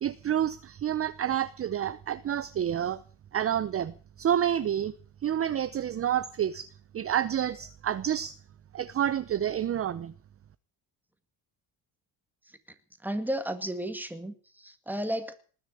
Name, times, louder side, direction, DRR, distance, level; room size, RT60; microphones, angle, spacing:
voice 1, 0.0-3.0 3.3-4.9 5.2-6.7 6.9-8.4 8.7-10.1, right 10 dB, 35° right, 0.7 m, -29 dB
voice 2, 13.0-15.4, right 1 dB, 5° right, 2.0 m, -33 dB
20.0 x 6.9 x 9.8 m
cardioid pair, 125°, 40 cm